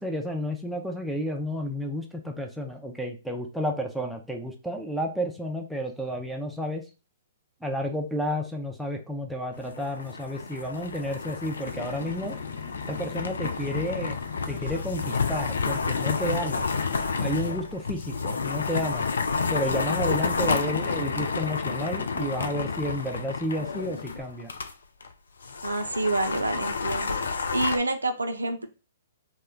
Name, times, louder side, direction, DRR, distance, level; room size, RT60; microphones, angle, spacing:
voice 1, 0.0-6.8 7.6-12.4 12.9-14.2 14.5-16.6 17.2-19.1 19.5-24.5, equal, ahead, 2 dB, 0.4 m, -31 dB
sound 1, 9.5-24.7 25.0-25.1 25.4-27.8, left 5 dB, 75° left, 0.3 m, -30 dB
sound 2, 11.6-17.3, left 6 dB, 50° left, 0.8 m, -42 dB
voice 2, 25.6-27.2 27.5-28.7, right 2 dB, 85° right, 7 dB, 0.4 m, -28 dB
2.2 x 2.1 x 3.5 m, 0.32 s
figure-of-eight pair, 120°, 0 cm